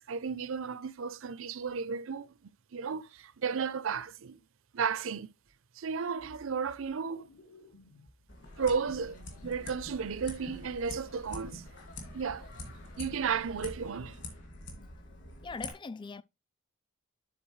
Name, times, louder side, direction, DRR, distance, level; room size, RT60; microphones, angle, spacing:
voice 1, 0.0-4.4 4.7-5.3 5.8-7.3 8.6-9.2 9.4-11.6 12.1-12.5 13.0-14.2, right 6 dB, 65° right, 0.5 m, -34 dB
sound 1, 5.5-5.6 6.2-6.9 7.2-8.3 8.6-10.6 10.9-11.5 11.9-12.2, left 1 dB, 70° left, 1.5 m, -57 dB
sound 2, 8.3-15.7, left 2 dB, 55° left, 2.2 m, -45 dB
sound 3, 8.5-14.5, left 2 dB, 90° left, 2.1 m, -60 dB
voice 2, 15.4-16.2, left 4 dB, 20° left, 0.3 m, -41 dB
11.5 x 4.2 x 3.2 m
head